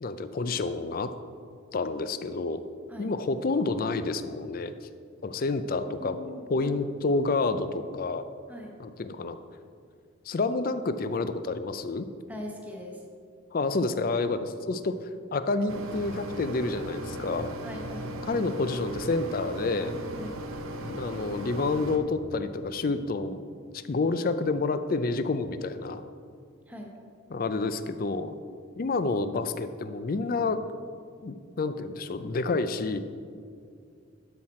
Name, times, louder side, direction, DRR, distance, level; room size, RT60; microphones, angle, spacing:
voice 1, 0.0-1.1 1.7-2.6 3.0-4.7 5.2-6.2 6.5-8.3 8.8-9.4 10.3-12.1 13.5-17.5 18.2-20.0 20.8-26.0 27.3-28.4 28.8-30.6 31.2-33.0, left 3 dB, 45° left, 11 dB, 0.4 m, -29 dB
voice 2, 5.8-6.7 8.5-8.7 12.3-13.0 17.6-18.1 20.2-20.4 26.7-26.9, left 1 dB, 10° right, 0 dB, 1.1 m, -41 dB
Mechanisms, 15.7-22.0, right 1 dB, 90° right, 0.8 m, -37 dB
12.0 x 5.8 x 4.3 m, 2.3 s
head